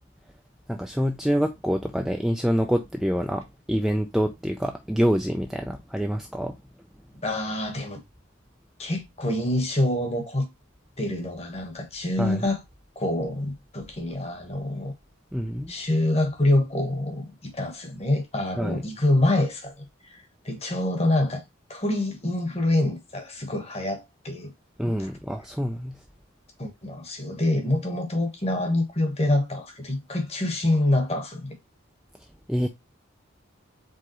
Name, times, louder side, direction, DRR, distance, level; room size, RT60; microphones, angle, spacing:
voice 1, 0.7-6.6 12.2-12.5 15.3-15.7 18.6-18.8 24.8-26.0 32.5-32.7, equal, ahead, 0.3 m, -26 dB
voice 2, 7.2-8.0 8.8-10.5 11.0-12.6 13.0-14.9 15.7-19.7 20.1-21.4 21.7-24.5 25.0-25.1 26.6-31.6, left 1 dB, 30° left, 1.1 m, -26 dB
4.9 x 3.6 x 2.9 m
head